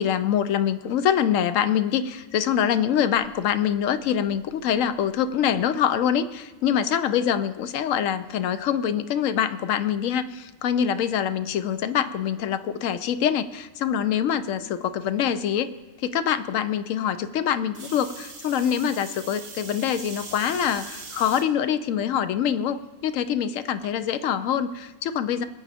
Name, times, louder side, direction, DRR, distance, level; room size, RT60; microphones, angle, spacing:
voice 1, 0.0-15.7 16.0-25.5, left 9 dB, 75° left, 11 dB, 0.9 m, -25 dB
sound 1, 3.1-5.9, right 2 dB, 25° right, 2.5 m, -61 dB
sound 2, 17.7-21.4 22.1-22.6 23.8-23.9, right 4 dB, 45° right, 1.2 m, -41 dB
21.0 x 8.5 x 3.5 m, 1.2 s
omnidirectional pair, 1.4 m